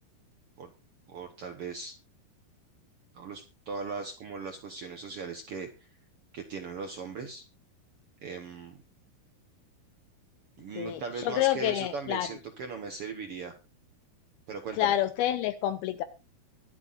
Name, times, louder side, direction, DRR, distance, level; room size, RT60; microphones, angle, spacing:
voice 1, 1.1-1.9 3.1-5.7 6.3-7.4 8.2-8.8 10.6-13.5 14.5-14.9, right 4 dB, 85° right, 6 dB, 1.2 m, -38 dB
voice 2, 10.8-12.3 14.8-16.0, left 13 dB, 80° left, 11 dB, 2.6 m, -28 dB
23.5 x 8.1 x 2.6 m, 0.28 s
omnidirectional pair, 4.5 m